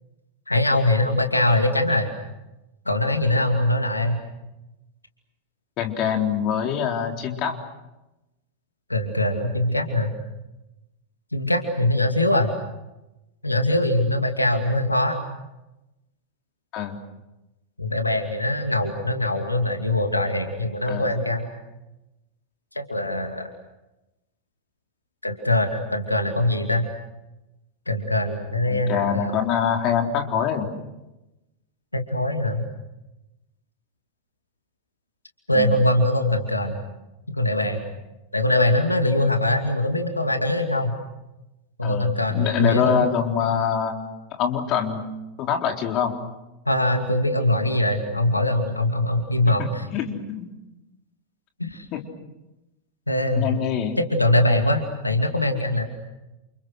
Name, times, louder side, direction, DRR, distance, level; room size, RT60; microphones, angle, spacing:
voice 1, 0.5-2.1 2.9-4.2 8.9-10.1 11.3-12.5 13.4-15.1 17.8-21.5 22.7-23.5 25.2-26.8 27.9-29.3 31.9-32.6 35.5-36.8 37.3-37.9 38.3-41.0 41.8-43.0 46.7-49.8 51.6-51.9 53.1-53.6 54.2-55.8, left 1 dB, 85° left, 5 dB, 2.5 m, -22 dB
voice 2, 5.8-7.5 16.7-17.0 20.9-21.1 28.7-30.7 35.6-35.8 41.8-44.0 44.4-45.1 45.4-46.1 49.6-50.5 51.9-52.0 53.4-54.0, left 8 dB, 35° left, 4 dB, 3.9 m, -24 dB
29.5 x 28.5 x 6.6 m, 0.97 s
figure-of-eight pair, 90°, 0 cm